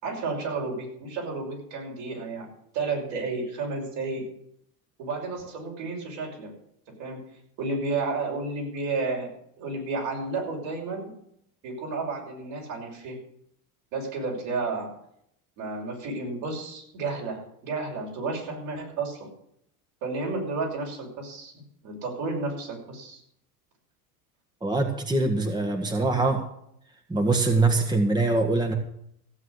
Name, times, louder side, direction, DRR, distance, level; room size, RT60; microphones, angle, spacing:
voice 1, 0.0-2.5 2.7-4.3 5.0-6.5 7.0-7.2 7.6-9.3 9.6-11.1 11.6-13.2 13.9-14.9 15.6-19.3 20.0-23.2, right 3 dB, 65° right, 0 dB, 6.2 m, -32 dB
voice 2, 24.6-26.5 27.1-28.7, right 3 dB, 10° right, 5 dB, 1.6 m, -23 dB
16.0 x 7.9 x 6.6 m, 0.71 s
hypercardioid pair, 95°, 46 cm